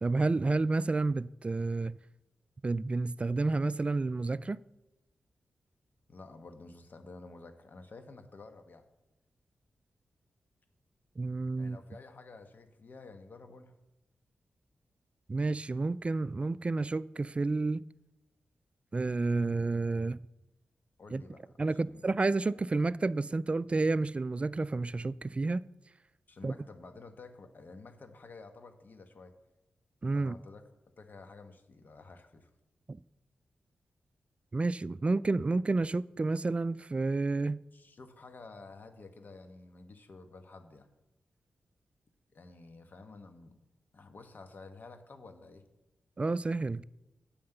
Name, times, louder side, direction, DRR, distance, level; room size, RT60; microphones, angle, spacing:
voice 1, 0.0-2.0 2.6-4.6 11.2-11.8 15.3-17.8 18.9-20.2 21.1-21.2 21.6-25.6 26.4-26.5 30.0-30.4 32.9-33.0 34.5-37.6 46.2-46.8, right 3 dB, 35° right, 0.3 m, -30 dB
voice 2, 6.1-8.8 11.6-13.7 21.0-22.1 26.3-29.3 30.1-30.6 31.0-32.5 37.7-40.9 42.3-43.6 43.9-45.6, left 3 dB, 60° left, 1.1 m, -51 dB
8.6 x 5.7 x 7.8 m
cardioid pair, 50°, 4 cm